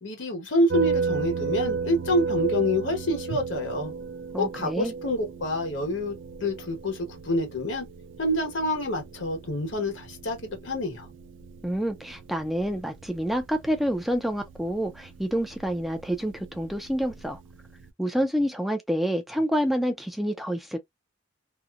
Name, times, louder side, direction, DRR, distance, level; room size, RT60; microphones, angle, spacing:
voice 1, 0.0-3.9 4.4-6.1 6.4-7.9 8.2-11.1, left 1 dB, 75° left, 1.2 m, -27 dB
sound 1, 0.7-17.9, right 5 dB, 75° right, 0.4 m, -35 dB
voice 2, 4.3-4.9 11.6-17.4 18.0-20.8, equal, ahead, 0.3 m, -28 dB
2.8 x 2.0 x 2.4 m
head